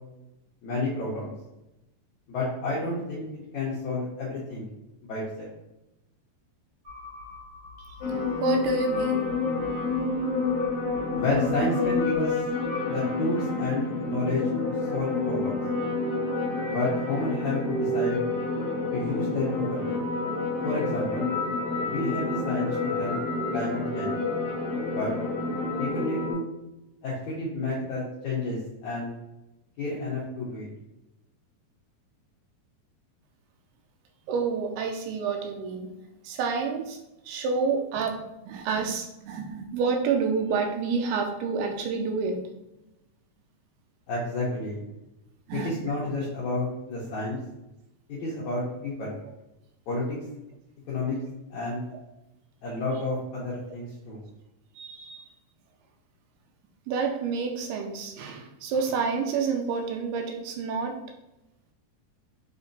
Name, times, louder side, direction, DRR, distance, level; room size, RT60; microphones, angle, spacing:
voice 1, 0.6-1.3 2.3-3.3 3.5-4.7 5.0-5.5 11.1-12.4 12.8-14.5 14.9-15.6 16.7-18.2 18.9-20.0 20.6-21.3 21.8-23.2 23.5-24.2 24.9-25.1 25.8-26.5 27.0-29.1 29.8-30.7 44.1-44.8 45.5-47.4 48.1-49.2 49.9-50.0 50.9-51.2 51.5-51.8 52.6-54.2, left 2 dB, 75° left, -7 dB, 1.7 m, -30 dB
sound 1, 6.8-13.6, left 4 dB, 55° right, 1.2 m, -43 dB
sound 2, 8.0-26.3, left 3 dB, 55° left, 2.1 m, -28 dB
voice 2, 8.4-9.3 34.3-35.9 36.2-37.0 37.3-42.4 45.5-45.8 54.8-55.3 56.9-61.0, right 5 dB, 80° right, 3 dB, 2.4 m, -29 dB
7.1 x 2.8 x 2.6 m, 0.95 s
omnidirectional pair, 4.8 m